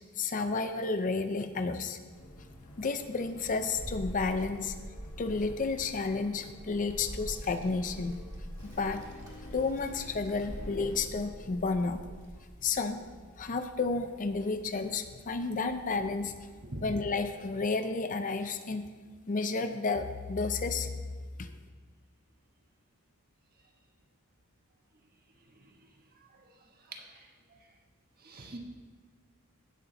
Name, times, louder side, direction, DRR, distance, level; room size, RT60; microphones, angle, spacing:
voice 1, 0.2-2.0 2.8-4.8 5.2-8.2 8.8-9.0 9.5-12.0 12.6-13.0 13.4-16.3 16.8-18.9 19.3-20.9 21.4-21.5, left 4 dB, 35° left, 8 dB, 0.5 m, -31 dB
sound 1, 2.1-11.0, left 1 dB, 75° left, 1.5 m, -50 dB
Child speech kid speaking, 2.9-17.3, equal, 15° right, 1.8 m, -47 dB
voice 2, 26.8-27.6 28.2-28.6, right 2 dB, 45° right, 3 dB, 1.1 m, -46 dB
15.5 x 6.0 x 3.9 m, 1.5 s
head